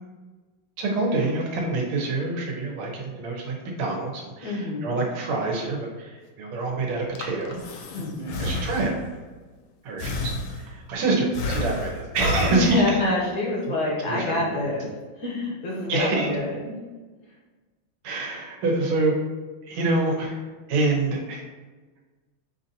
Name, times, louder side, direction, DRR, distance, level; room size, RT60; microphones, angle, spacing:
voice 1, 0.8-7.6 8.0-8.1 8.4-8.9 9.8-13.0 14.0-14.5 15.9-16.3 18.0-19.1 19.6-20.4 20.7-21.4, right 2 dB, 80° right, -1 dB, 1.7 m, -26 dB
voice 2, 4.4-5.0 7.9-8.5 12.5-14.9 15.2-16.8, left 1 dB, 60° left, -3 dB, 1.1 m, -26 dB
Breathing, 6.9-9.2 10.0-10.9 11.3-13.2, left 2 dB, 80° left, 0.9 m, -31 dB
5.7 x 2.6 x 2.7 m, 1.3 s
omnidirectional pair, 2.4 m